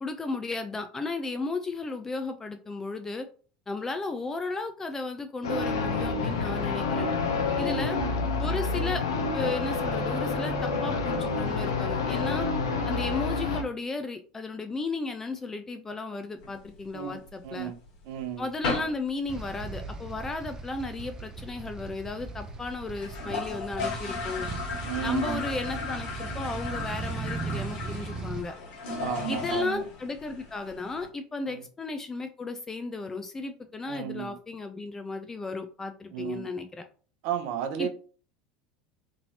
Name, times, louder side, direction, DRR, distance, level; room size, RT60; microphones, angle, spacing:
voice 1, 0.0-3.3 3.7-7.1 7.6-8.0 8.4-9.0 9.3-12.5 12.9-17.7 18.4-24.5 25.0-28.5 29.3-36.8 37.8-37.9, left 3 dB, 20° left, 0.4 m, -34 dB
sound 1, 5.4-13.6, left 4 dB, 85° left, 0.6 m, -28 dB
voice 2, 7.6-8.2 12.6-12.8 16.9-17.8 18.1-18.5 24.8-25.4 29.0-29.8 31.5-31.6 33.9-34.4 36.1-36.5 37.2-37.9, right 9 dB, 65° right, 0.6 m, -34 dB
sound 2, 16.4-17.5 17.9-18.0 18.2-18.3 18.6-19.1 19.3-19.4 19.7-19.8 20.1-20.6 20.9-21.0 21.2-21.3 21.5-21.6 22.1-22.2 22.5-22.6 22.9-31.1, left 4 dB, 60° left, 1.4 m, -36 dB
sound 3, 19.3-28.4, right 3 dB, 25° right, 0.6 m, -38 dB
2.9 x 2.8 x 2.8 m
hypercardioid pair, 90°, 2 cm